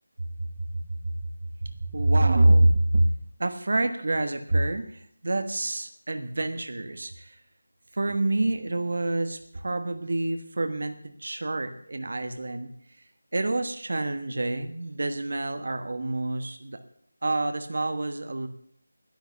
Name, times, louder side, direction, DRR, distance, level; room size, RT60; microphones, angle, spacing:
voice 1, 0.4-1.1 1.8-3.1 3.4-7.4 7.9-12.7 13.0-13.1 13.3-16.8 17.2-18.5, right 2 dB, 55° right, 8 dB, 1.3 m, -26 dB
10.5 x 10.5 x 8.4 m, 0.66 s
figure-of-eight pair, 175°, 0 cm